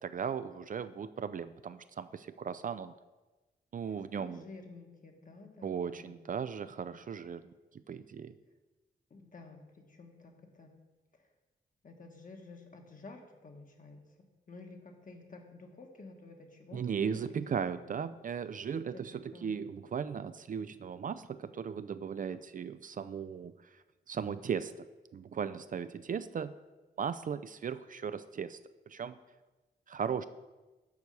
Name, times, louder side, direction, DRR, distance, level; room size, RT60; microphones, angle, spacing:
voice 1, 0.0-2.9 3.7-4.4 5.6-7.5 7.9-8.3 16.7-23.5 24.1-24.7 25.1-26.5 27.0-28.6 28.9-29.2 29.9-30.2, right 7 dB, 50° right, 13 dB, 0.4 m, -37 dB
voice 2, 4.1-6.1 9.1-10.7 11.8-14.0 14.5-17.1 17.5-18.0 18.9-19.0 19.3-19.6, left 3 dB, 50° left, 3 dB, 1.3 m, -51 dB
7.1 x 4.6 x 6.7 m, 1.2 s
cardioid pair, 65°, 18 cm